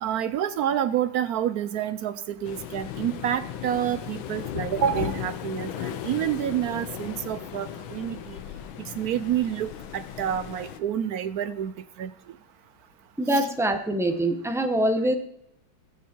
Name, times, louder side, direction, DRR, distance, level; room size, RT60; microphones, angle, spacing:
voice 1, 0.0-8.4 9.0-11.7 12.0-12.1 13.3-13.5, right 10 dB, 80° right, 13 dB, 0.8 m, -28 dB
Waves surf, 2.4-10.8, left 10 dB, 75° left, 1.6 m, -36 dB
voice 2, 13.2-15.1, right 1 dB, 5° right, 5 dB, 0.3 m, -24 dB
20.0 x 7.2 x 4.5 m, 0.75 s
omnidirectional pair, 2.3 m